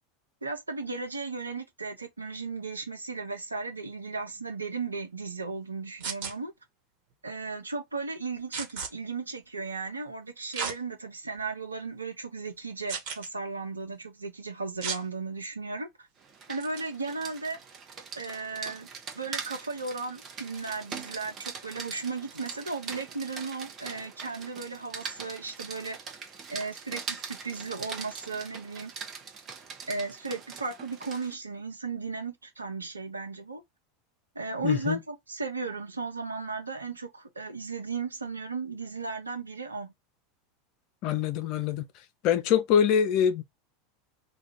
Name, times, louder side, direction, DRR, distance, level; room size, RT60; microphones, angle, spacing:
voice 1, 0.4-6.5 7.2-16.1 16.5-17.6 18.1-18.9 19.1-26.0 26.5-28.9 29.9-33.6 34.3-39.9, right 3 dB, 80° right, 0.7 m, -35 dB
sound 1, 6.0-6.3 8.5-8.9 10.5-10.8 11.4-11.5 12.9-13.3 14.8-15.0 16.6-16.8, right 6 dB, 50° right, 1.2 m, -33 dB
Rain, 16.2-31.3, right 6 dB, 30° right, 0.8 m, -42 dB
voice 2, 34.6-35.0 41.0-41.9 42.2-43.4, left 8 dB, 45° left, 0.5 m, -24 dB
2.4 x 2.3 x 3.5 m
figure-of-eight pair, 80°, 0 cm